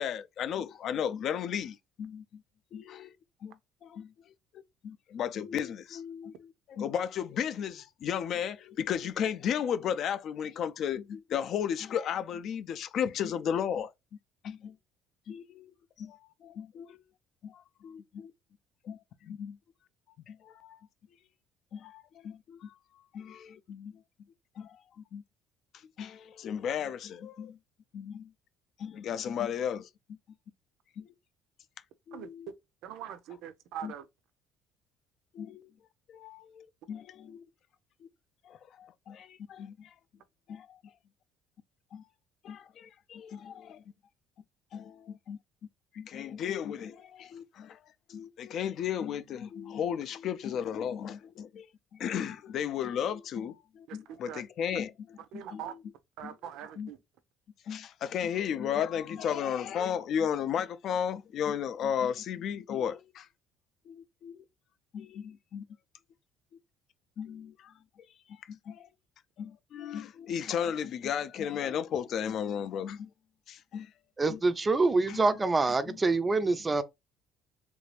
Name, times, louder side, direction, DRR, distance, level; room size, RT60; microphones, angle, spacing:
voice 1, 0.0-2.2 2.7-3.1 3.4-3.5 3.8-4.1 4.8-13.9 14.4-14.7 15.3-15.7 16.0-17.0 17.4-18.3 18.8-19.6 20.3-20.8 21.7-22.7 23.1-23.9 24.6-24.8 25.1-25.2 26.0-27.6 27.9-28.3 28.8-30.2 31.0-31.1 32.1-32.5 33.8-33.9 35.3-35.6 36.1-37.4 38.5-39.9 40.5-40.8 41.9-42.0 42.4-43.8 44.7-45.4 45.9-47.8 48.1-51.7 51.9-55.8 56.2-56.3 56.8-56.9 57.7-63.3 63.9-64.4 64.9-65.7 67.2-67.7 68.3-68.9 69.4-73.1 73.5-73.9 74.3-74.4 75.1-75.2 75.9-76.0, left 8 dB, 50° left, 0.4 m, -34 dB
voice 2, 32.8-34.0 53.9-54.4 55.3-55.8 56.2-57.0, right 10 dB, 70° right, 0.5 m, -42 dB
voice 3, 74.2-76.8, right 3 dB, 15° right, 0.4 m, -26 dB
3.2 x 2.6 x 3.2 m
cardioid pair, 140°, 0 cm